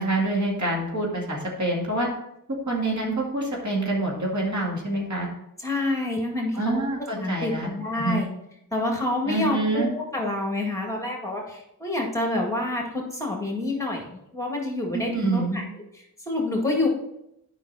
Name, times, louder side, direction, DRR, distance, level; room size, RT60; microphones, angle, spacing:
voice 1, 0.0-2.1 2.7-5.3 6.5-7.7 7.9-8.2 9.3-9.9 14.9-15.6, right 2 dB, 55° right, -2 dB, 2.3 m, -26 dB
voice 2, 5.6-6.8 7.1-8.3 8.7-15.6 16.3-16.9, left 2 dB, 10° left, 0 dB, 2.0 m, -27 dB
9.2 x 5.7 x 4.2 m, 0.81 s
wide cardioid pair, 80°, 35 cm